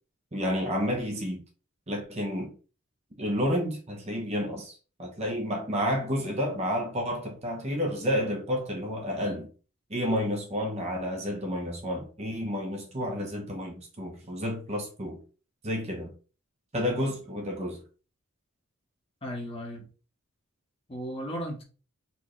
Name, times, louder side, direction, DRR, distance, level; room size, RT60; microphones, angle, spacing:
voice 1, 0.3-1.4 1.9-2.6 3.2-9.5 9.9-15.2 15.6-16.1 16.7-17.8, equal, 30° right, 0.9 m, -30 dB
voice 2, 19.2-19.9 20.9-21.6, equal, 25° left, 1.2 m, -35 dB
4.3 x 3.5 x 3.1 m
head